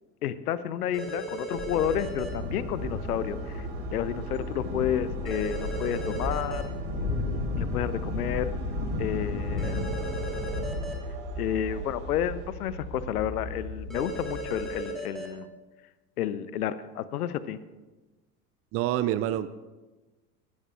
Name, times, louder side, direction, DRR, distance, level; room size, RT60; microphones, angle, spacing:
voice 1, 0.2-3.7 3.9-6.7 7.6-8.5 9.0-9.9 11.4-15.5 16.2-17.6, left 10 dB, 65° left, 15 dB, 0.8 m, -31 dB
sound 1, 0.9-2.3 5.3-6.6 9.6-10.9 13.9-15.3, right 2 dB, ahead, 3.3 m, -36 dB
sound 2, 1.5-10.8, left 3 dB, 85° left, 4.9 m, -34 dB
sound 3, 1.8-14.7, right 1 dB, 55° right, 2.8 m, -37 dB
voice 2, 18.7-19.5, right 13 dB, 30° right, 14 dB, 0.5 m, -27 dB
19.0 x 12.5 x 2.5 m, 1.2 s
figure-of-eight pair, 75°, 48 cm